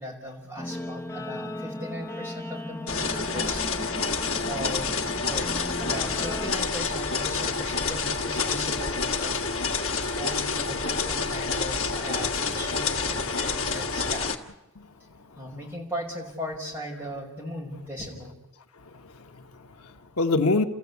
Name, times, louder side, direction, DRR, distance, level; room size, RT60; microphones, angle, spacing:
voice 1, 0.0-3.6 4.5-4.9 5.2-5.5 5.8-9.4 10.2-14.3 15.4-18.3, equal, 10° right, -3 dB, 5.4 m, -37 dB
Guitar, 0.6-6.5, left 1 dB, 10° left, 0.7 m, -37 dB
sound 1, 2.9-14.4, left 4 dB, 70° left, 1.8 m, -28 dB
voice 2, 18.9-20.6, left 3 dB, 85° left, 6 dB, 1.2 m, -27 dB
29.0 x 14.5 x 8.3 m, 1.1 s
head